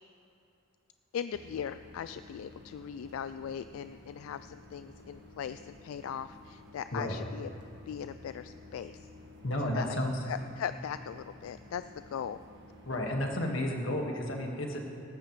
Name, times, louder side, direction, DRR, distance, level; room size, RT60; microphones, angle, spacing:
voice 1, 1.1-7.5 7.9-9.1 9.7-10.0 10.3-11.8 12.1-12.4, left 8 dB, 90° left, 12 dB, 0.3 m, -39 dB
sound 1, 1.3-13.1, left 2 dB, 55° right, 1.6 m, -53 dB
voice 2, 9.4-10.2 12.9-14.8, left 1 dB, 65° left, 1 dB, 1.8 m, -32 dB
18.0 x 14.5 x 3.2 m, 2.7 s
head